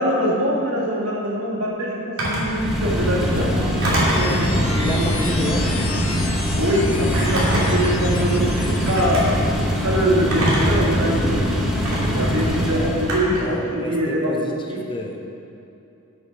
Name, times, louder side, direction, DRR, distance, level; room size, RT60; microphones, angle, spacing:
voice 1, 0.0-3.5 4.0-4.4 5.0-5.5 6.6-9.2 9.7-14.3 14.7-14.8, equal, 65° right, -4 dB, 2.2 m, -23 dB
Telephone, 2.2-2.5 3.8-4.3 5.6-5.9 7.1-7.9 8.9-9.2 10.3-10.9 11.8-12.0 13.1-13.5, right 1 dB, 80° right, 2.8 m, -23 dB
sound 1, 2.4-13.2, equal, ahead, 1.2 m, -22 dB
sound 2, 3.3-9.2, left 3 dB, 65° left, 1.4 m, -33 dB
voice 2, 4.3-5.9 12.5-15.2, left 1 dB, 20° left, 1 dB, 0.7 m, -30 dB
8.8 x 7.8 x 6.1 m, 2.8 s
head